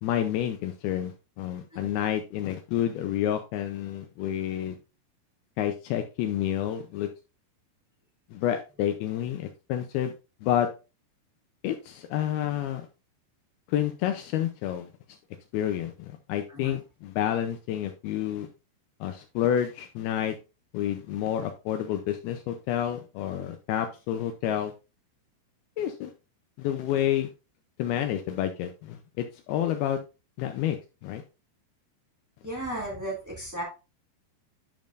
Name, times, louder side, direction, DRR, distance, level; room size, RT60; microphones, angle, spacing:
voice 1, 0.0-4.8 5.6-7.1 8.3-10.1 10.4-10.7 11.6-12.9 13.7-14.9 15.5-18.5 19.0-20.4 20.7-24.7 25.8-26.1 26.6-27.3 27.8-30.0 30.4-31.2, left 11 dB, 90° left, 6 dB, 2.2 m, -29 dB
voice 2, 32.4-33.6, right 1 dB, 15° right, -4 dB, 0.6 m, -35 dB
11.0 x 5.2 x 2.5 m, 0.30 s
omnidirectional pair, 5.2 m